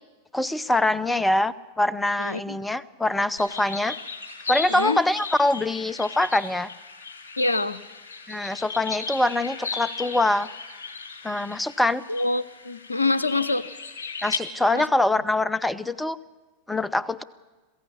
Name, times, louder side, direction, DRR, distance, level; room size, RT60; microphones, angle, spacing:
voice 1, 0.3-4.0 4.5-6.7 8.3-10.5 11.2-12.0 14.2-16.2 16.7-17.2, left 2 dB, 5° left, 19 dB, 0.7 m, -24 dB
voice 2, 2.2-2.6 4.7-5.0 7.4-7.8 12.1-13.7 14.7-14.9, left 2 dB, 80° left, 17 dB, 0.8 m, -25 dB
sound 1, 3.4-14.4, left 4 dB, 65° left, 3.1 m, -36 dB
22.0 x 15.5 x 8.6 m, 1.3 s
figure-of-eight pair, 90°, 0 cm